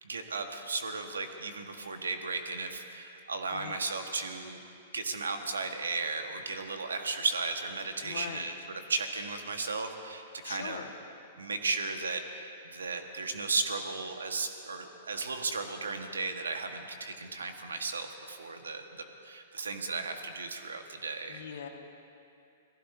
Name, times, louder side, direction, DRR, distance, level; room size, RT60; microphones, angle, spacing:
voice 1, 0.0-4.6 4.9-10.8 11.4-18.8 19.2-21.4, right 4 dB, 80° right, 6 dB, 1.4 m, -35 dB
voice 2, 8.0-8.5 10.4-10.9 21.3-21.7, left 8 dB, 65° left, 4 dB, 1.6 m, -41 dB
27.5 x 19.0 x 2.7 m, 2.6 s
figure-of-eight pair, 110°, 0 cm